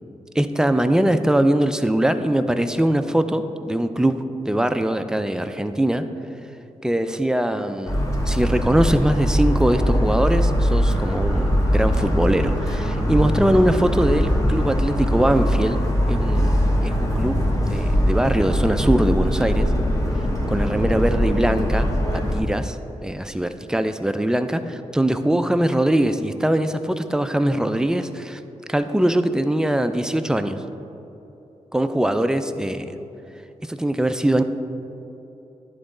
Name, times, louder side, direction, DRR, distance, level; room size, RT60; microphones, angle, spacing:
voice 1, 0.3-6.1 6.8-15.8 16.1-17.4 17.7-19.7 20.5-21.9 22.3-28.4 28.7-30.6 31.7-33.0 33.6-34.4, right 1 dB, 5° right, 9 dB, 0.4 m, -22 dB
Motor vehicle (road) / Siren, 7.9-22.4, equal, 25° left, 1.2 m, -21 dB
10.5 x 4.0 x 3.8 m, 3.0 s
cardioid pair, 65°, 12 cm